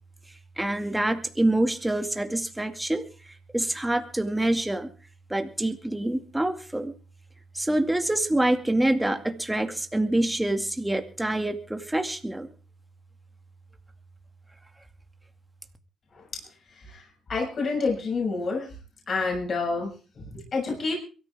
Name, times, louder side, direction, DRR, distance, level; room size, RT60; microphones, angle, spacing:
voice 1, 0.6-3.0 3.5-4.9 5.3-6.9 7.6-12.5, right 1 dB, 10° right, 6 dB, 2.2 m, -26 dB
voice 2, 17.3-18.7 19.1-21.0, left 4 dB, 45° left, -1 dB, 6.9 m, -28 dB
23.0 x 14.0 x 3.6 m, 0.36 s
cardioid pair, 90°, 0 cm